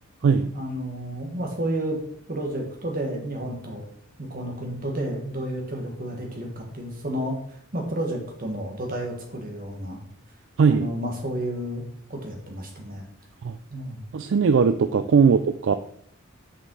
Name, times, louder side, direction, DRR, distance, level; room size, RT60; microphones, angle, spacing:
voice 1, 0.2-2.0 2.3-3.8 4.2-10.0 10.6-11.8 12.1-13.0 13.7-14.0, right 1 dB, 45° right, 1 dB, 1.6 m, -31 dB
voice 2, 14.1-15.8, right 6 dB, 60° right, 11 dB, 0.3 m, -19 dB
6.4 x 5.5 x 4.7 m, 0.64 s
head